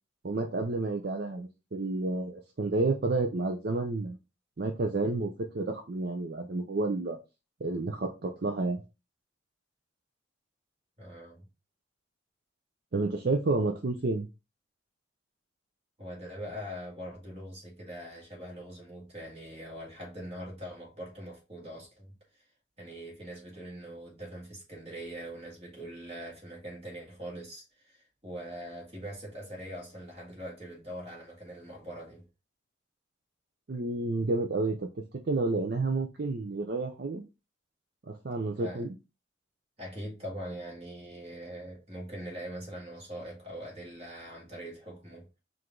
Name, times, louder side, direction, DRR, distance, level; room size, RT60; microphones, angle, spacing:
voice 1, 0.2-4.2 4.6-7.2 7.6-8.8 12.9-14.3 33.7-34.9 35.3-37.2 38.1-38.9, right 3 dB, 55° right, 0.5 m, -30 dB
voice 2, 11.0-11.5 16.0-22.1 22.8-32.2 38.5-38.9 39.8-45.4, equal, 30° right, 1.8 m, -42 dB
4.7 x 2.5 x 3.7 m
head